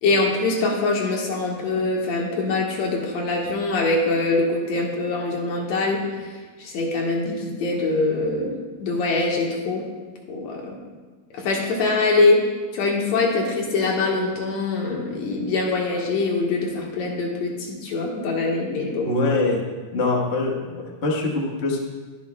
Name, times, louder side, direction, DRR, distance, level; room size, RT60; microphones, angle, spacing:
voice 1, 0.0-6.3 6.6-8.5 8.8-9.8 10.3-10.8 11.3-12.4 12.7-19.1, left 3 dB, 65° left, -1 dB, 2.6 m, -23 dB
voice 2, 19.0-19.6 19.9-21.8, left 2 dB, 45° left, -1 dB, 0.8 m, -23 dB
22.0 x 7.3 x 2.3 m, 1.4 s
omnidirectional pair, 3.4 m